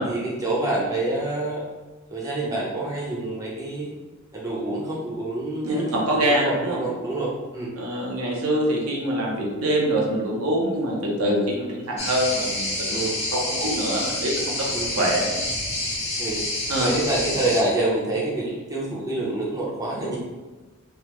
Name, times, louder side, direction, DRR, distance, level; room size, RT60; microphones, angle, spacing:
voice 1, 0.0-1.6 2.1-3.9 4.3-7.9 12.9-13.2 14.7-14.9 16.2-16.4 16.8-20.2, right 2 dB, 15° right, -5 dB, 0.6 m, -27 dB
voice 2, 5.6-6.8 7.7-13.0 13.3-15.3 16.7-16.9, right 1 dB, 85° right, -2 dB, 0.7 m, -24 dB
sound 1, 12.0-17.6, left 1 dB, 30° left, 0.7 m, -28 dB
3.4 x 2.0 x 3.0 m, 1.2 s
head